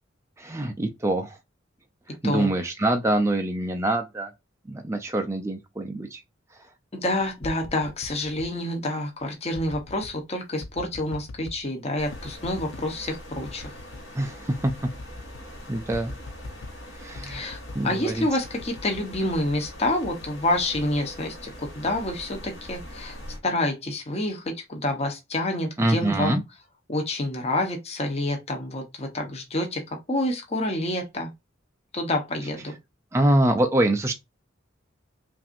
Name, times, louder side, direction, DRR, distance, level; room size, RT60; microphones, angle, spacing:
voice 1, 0.4-1.4 2.2-4.3 4.7-6.2 14.1-14.7 15.7-16.1 16.9-18.3 25.8-26.4 33.1-34.1, right 1 dB, 15° right, 0.5 m, -25 dB
voice 2, 6.9-13.7 17.2-17.6 17.8-23.2 23.4-26.4 26.9-29.8 30.1-31.3 31.9-32.7, left 1 dB, 35° left, 1.0 m, -28 dB
sound 1, 7.2-8.5 9.5-10.2 10.6-11.7 12.1-12.9 13.4-14.1 14.4-14.5 14.7-15.5 15.9-16.8 17.2-17.9 18.4-21.5 22.0-22.4, left 2 dB, 85° left, 0.5 m, -42 dB
sound 2, 12.0-23.4, equal, 65° left, 2.8 m, -43 dB
5.7 x 2.6 x 2.5 m
head